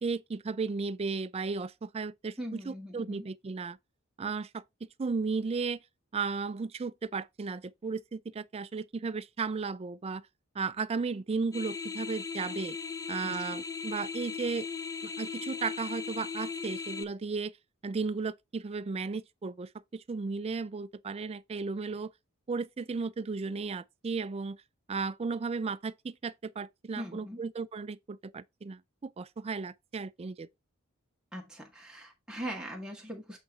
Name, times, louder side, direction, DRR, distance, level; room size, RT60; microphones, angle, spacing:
voice 1, 0.0-3.8 4.2-4.6 5.0-5.8 6.1-10.3 10.5-12.8 13.1-14.7 15.0-17.5 17.8-22.1 22.5-24.6 24.9-30.5, right 4 dB, 30° right, 0.4 m, -35 dB
voice 2, 2.4-3.3 13.2-13.4 27.0-27.4 31.3-33.4, equal, 5° right, 1.7 m, -41 dB
sound 1, 11.5-17.0, left 5 dB, 15° left, 0.6 m, -38 dB
8.1 x 3.9 x 4.4 m
head